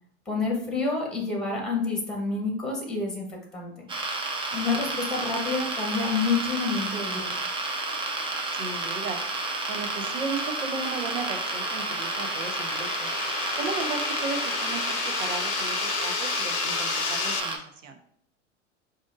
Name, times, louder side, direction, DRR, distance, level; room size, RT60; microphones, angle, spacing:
voice 1, 0.3-3.9 4.5-7.3, left 4 dB, ahead, -1 dB, 1.1 m, -28 dB
sound 1, 3.9-17.6, right 3 dB, 15° right, 0.5 m, -31 dB
sound 2, 7.0-17.4, left 8 dB, 60° left, 0.6 m, -34 dB
voice 2, 8.5-9.2 9.7-13.1 13.6-18.0, right 4 dB, 85° right, 6 dB, 0.7 m, -35 dB
4.8 x 2.6 x 2.6 m, 0.65 s
hypercardioid pair, 95°, 37 cm